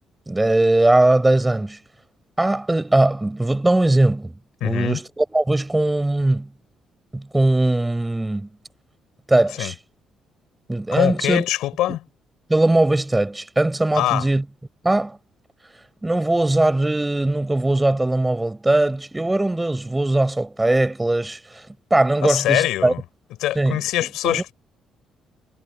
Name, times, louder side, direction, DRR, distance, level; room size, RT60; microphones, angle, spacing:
voice 1, 0.3-1.8 2.4-4.3 4.6-6.5 7.1-8.5 9.3-9.7 10.7-11.4 12.5-14.4 14.8-15.2 16.0-21.6 21.9-22.9 23.5-23.8 24.2-24.5, right 2 dB, 15° right, 6.7 m, -20 dB
voice 2, 4.6-5.0 9.6-9.7 10.9-12.0 13.9-14.3 22.2-23.0 23.4-24.5, left 14 dB, 80° left, 5.5 m, -23 dB
supercardioid pair, 70°, 0 cm